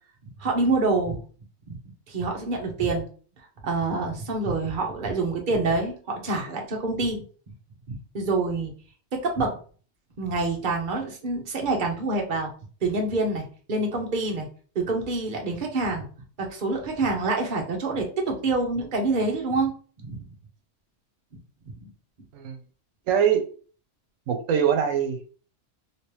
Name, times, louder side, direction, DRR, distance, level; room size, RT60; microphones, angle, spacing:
voice 1, 0.4-1.2 1.7-1.8 2.1-3.1 3.6-7.2 7.9-8.7 9.1-9.6 10.2-12.5 12.8-14.5 14.7-16.1 16.4-19.7 20.0-20.3, right 3 dB, 45° right, 0.9 m, -26 dB
voice 2, 23.1-23.5 24.3-25.3, right 8 dB, 90° right, 1.0 m, -23 dB
3.1 x 2.9 x 3.0 m
omnidirectional pair, 1.3 m